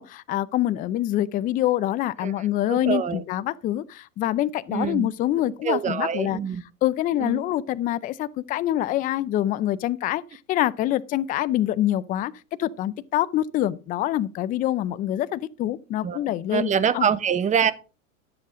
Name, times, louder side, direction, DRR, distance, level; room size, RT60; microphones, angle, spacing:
voice 1, 0.0-6.4 6.8-12.3 12.6-17.1, left 13 dB, 20° left, 0.4 m, -25 dB
voice 2, 2.7-3.2 4.7-5.1 5.6-6.6 7.2-7.5 16.0-16.2 16.5-17.7, right 7 dB, 20° right, 0.7 m, -24 dB
11.5 x 7.6 x 3.7 m
supercardioid pair, 120°, 41 cm